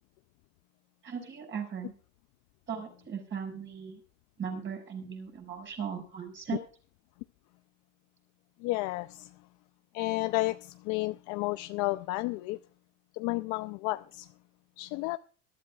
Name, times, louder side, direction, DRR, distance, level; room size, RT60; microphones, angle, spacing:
voice 1, 1.0-1.9 2.7-4.0 4.4-6.6, right 7 dB, 30° right, 6.2 m, -38 dB
voice 2, 8.6-9.3 9.9-12.6 13.1-14.3 14.8-15.2, left 21 dB, 50° left, 0.6 m, -32 dB
21.5 x 13.0 x 2.4 m
supercardioid pair, 130°, 40 cm